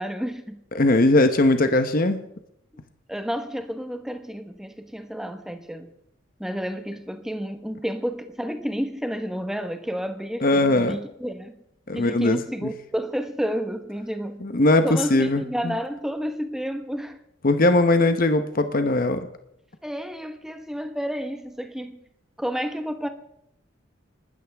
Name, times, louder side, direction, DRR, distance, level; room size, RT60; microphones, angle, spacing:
voice 1, 0.0-0.6 3.1-5.9 6.4-11.6 11.9-14.4 14.8-17.2 19.8-22.0 22.4-23.1, equal, ahead, 1.1 m, -30 dB
voice 2, 0.7-2.2 10.4-11.0 11.9-12.7 14.4-15.7 17.4-19.3, left 2 dB, 45° left, 0.9 m, -20 dB
29.5 x 13.0 x 3.5 m
head